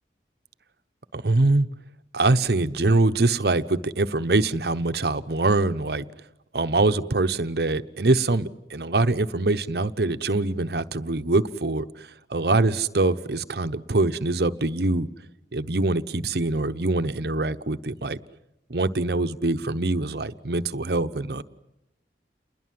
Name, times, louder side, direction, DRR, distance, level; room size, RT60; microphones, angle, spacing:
voice 1, 1.1-1.7 2.1-6.0 6.5-15.1 15.5-18.2 18.7-21.4, right 2 dB, 65° right, 11 dB, 1.0 m, -24 dB
28.5 x 21.0 x 7.7 m, 0.88 s
head